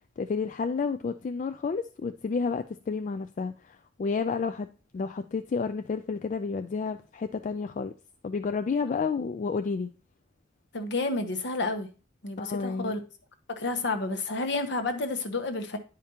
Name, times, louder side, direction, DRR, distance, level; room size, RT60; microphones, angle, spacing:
voice 1, 0.2-4.7 4.9-7.9 8.2-9.9 12.4-13.0, left 5 dB, 40° left, 0.3 m, -30 dB
voice 2, 10.7-11.9 12.2-13.0 13.5-15.8, left 2 dB, 65° left, 0.9 m, -30 dB
9.8 x 5.0 x 2.9 m
head